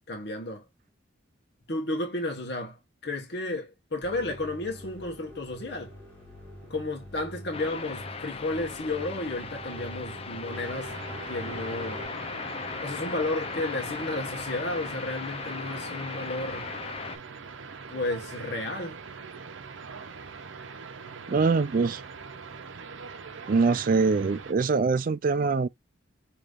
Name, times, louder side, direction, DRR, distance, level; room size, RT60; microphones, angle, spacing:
voice 1, 0.1-0.6 1.7-2.8 3.0-5.9 6.7-10.9 11.3-12.1 12.8-16.7 17.9-19.0, left 2 dB, 60° left, 1.1 m, -32 dB
sound 1, 4.0-12.1, equal, 10° left, 2.2 m, -44 dB
sound 2, 7.5-17.2, left 4 dB, 30° left, 0.5 m, -38 dB
sound 3, 10.5-24.5, right 5 dB, 85° right, 0.6 m, -43 dB
voice 2, 21.3-22.0 23.5-25.7, right 4 dB, 45° right, 0.4 m, -23 dB
5.0 x 2.9 x 2.4 m
head